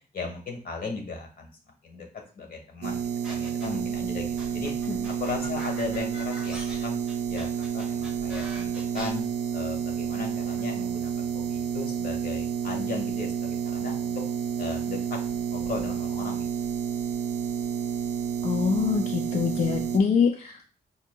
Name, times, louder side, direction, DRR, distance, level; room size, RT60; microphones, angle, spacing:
voice 1, 0.1-1.5 1.8-2.1 2.3-4.7 5.2-7.0 7.3-8.7 8.9-9.2 9.5-14.1 14.6-15.2 15.5-16.5, left 4 dB, 60° left, 2 dB, 1.0 m, -36 dB
sound 1, 2.8-20.0, right 7 dB, 90° right, 0.4 m, -30 dB
sound 2, 3.2-3.9 4.4-9.1, equal, 5° right, 1.1 m, -42 dB
voice 2, 18.4-20.7, left 6 dB, 40° left, 2 dB, 0.4 m, -25 dB
5.6 x 2.7 x 2.2 m, 0.38 s
wide cardioid pair, 140°, 17 cm